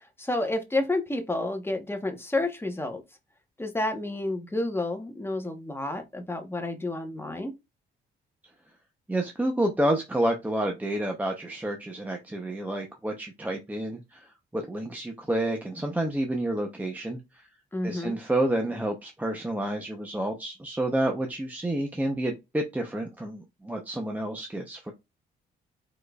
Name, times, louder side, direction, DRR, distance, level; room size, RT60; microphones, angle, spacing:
voice 1, 0.2-3.0 3.6-7.5 17.7-18.2, left 2 dB, 10° left, 1.0 m, -30 dB
voice 2, 9.1-14.3 14.5-17.2 17.8-24.9, right 1 dB, 10° right, 0.7 m, -29 dB
5.0 x 4.2 x 2.3 m
cardioid pair, 90°, 20 cm